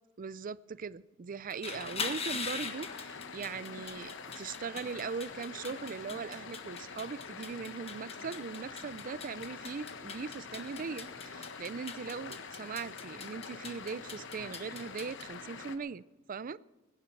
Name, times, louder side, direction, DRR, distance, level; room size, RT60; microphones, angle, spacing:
voice 1, 0.2-16.0 16.3-16.6, right 5 dB, 40° right, 0.4 m, -40 dB
sound 1, 1.4-15.2, left 5 dB, 30° left, 1.5 m, -43 dB
sound 2, 1.6-15.8, left 5 dB, 60° left, 1.1 m, -46 dB
22.0 x 11.0 x 4.6 m
head